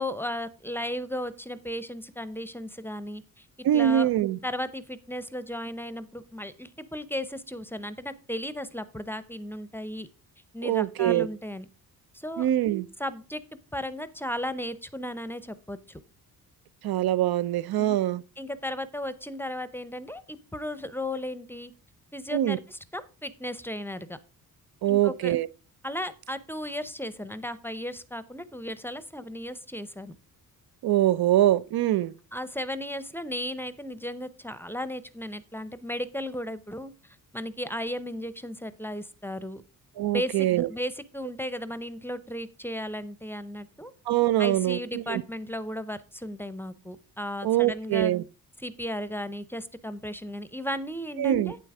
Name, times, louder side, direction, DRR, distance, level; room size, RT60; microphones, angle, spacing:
voice 1, 0.0-3.5 3.7-4.1 4.4-10.1 10.5-11.7 12.1-12.5 13.0-13.4 13.7-16.0 17.8-18.0 18.4-21.7 22.1-24.2 24.9-25.4 25.8-30.2 32.3-39.6 40.1-43.9 44.4-48.1 48.6-51.6, left 1 dB, 5° left, 0.6 m, -35 dB
voice 2, 3.6-4.4 10.6-11.3 12.4-12.9 16.8-18.2 22.3-22.6 24.8-25.5 30.8-32.1 40.0-40.7 44.1-45.2 47.4-48.2 51.2-51.5, right 13 dB, 85° right, 0.7 m, -24 dB
9.2 x 7.7 x 4.8 m
wide cardioid pair, 145°, 36 cm